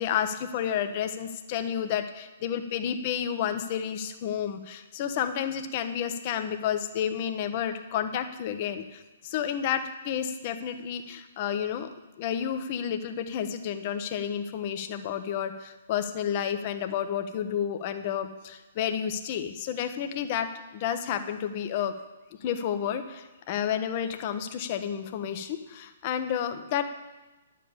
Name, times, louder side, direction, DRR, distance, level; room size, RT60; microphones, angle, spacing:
voice 1, 0.0-11.9 12.2-20.5 20.7-21.9 22.4-26.8, left 9 dB, 40° left, 8 dB, 1.1 m, -31 dB
11.0 x 7.7 x 7.0 m, 1.1 s
figure-of-eight pair, 125°, 0 cm